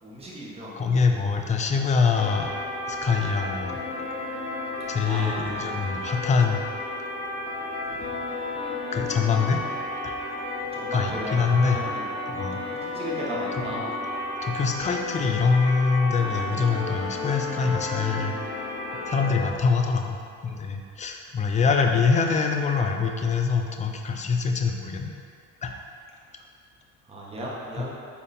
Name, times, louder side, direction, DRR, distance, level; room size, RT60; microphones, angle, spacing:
voice 1, 0.0-0.9 1.1-1.2 5.0-5.6 7.9-8.1 10.7-12.1 12.8-13.9 27.1-27.9, right 1 dB, 15° right, -5 dB, 1.4 m, -35 dB
voice 2, 0.8-2.5 2.9-3.8 4.9-6.6 8.9-9.6 10.0-10.2 10.9-11.8 12.3-12.6 14.4-18.3 19.1-20.2 20.4-25.1 25.6-25.7 27.8-27.9, left 5 dB, 20° left, 3 dB, 0.5 m, -24 dB
sound 1, 2.1-19.5, left 2 dB, 60° left, 1.4 m, -32 dB
8.6 x 3.6 x 4.3 m, 2.3 s
cardioid pair, 150°, 35 cm